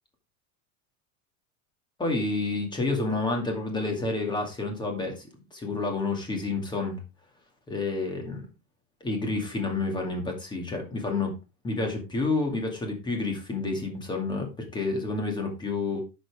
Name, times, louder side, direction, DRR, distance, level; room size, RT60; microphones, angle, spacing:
voice 1, 2.0-7.0 7.7-8.5 9.0-11.3 11.6-16.0, left 3 dB, 10° left, 2 dB, 2.3 m, -29 dB
11.5 x 6.3 x 3.5 m, 0.28 s
cardioid pair, 175°, 41 cm